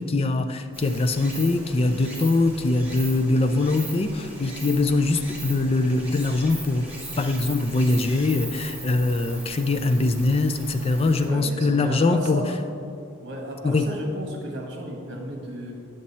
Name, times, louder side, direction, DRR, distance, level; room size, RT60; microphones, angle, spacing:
voice 1, 0.0-6.9 7.2-12.5 13.6-13.9, left 2 dB, 25° left, 8 dB, 0.3 m, -22 dB
Stream, 0.7-11.3, right 1 dB, 10° right, 1.5 m, -39 dB
voice 2, 11.2-12.5 13.2-15.7, equal, 50° right, 0 dB, 1.4 m, -34 dB
8.6 x 6.5 x 4.2 m, 2.5 s
head